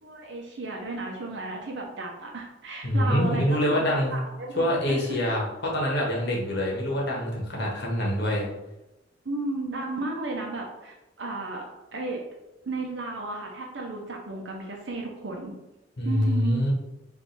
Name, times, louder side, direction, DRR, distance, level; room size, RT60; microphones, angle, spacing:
voice 1, 0.0-5.2 9.2-11.6 11.9-12.2 12.6-15.5 16.0-16.6, right 2 dB, 70° right, 0 dB, 0.7 m, -34 dB
voice 2, 2.8-4.1 4.6-8.5 16.0-16.7, left 1 dB, 65° left, -2 dB, 1.2 m, -25 dB
5.2 x 2.6 x 3.2 m, 0.98 s
head